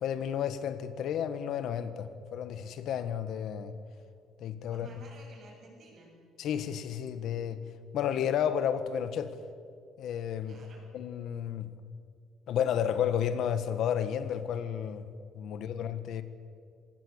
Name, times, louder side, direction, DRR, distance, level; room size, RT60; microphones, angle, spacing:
voice 1, 0.0-3.7 4.4-4.9 6.4-7.6 7.9-9.4 10.0-10.6 10.9-11.7 12.5-15.1 15.3-16.2, left 9 dB, 60° left, 12 dB, 1.6 m, -32 dB
voice 2, 4.7-6.2 10.4-10.9 15.5-15.6, right 2 dB, 40° right, 0 dB, 7.4 m, -53 dB
26.0 x 18.5 x 8.3 m, 2.3 s
cardioid pair, 150°, 0 cm